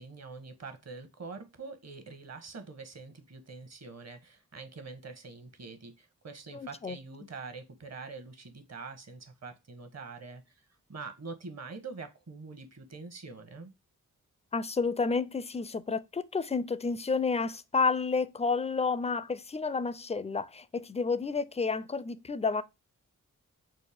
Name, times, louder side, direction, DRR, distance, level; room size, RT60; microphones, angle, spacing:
voice 1, 0.0-10.4 10.9-13.7, right 4 dB, 45° right, 1.0 m, -45 dB
voice 2, 6.5-7.0 14.5-22.6, left 4 dB, 20° left, 0.4 m, -30 dB
4.2 x 2.1 x 3.4 m
cardioid pair, 40°, 35 cm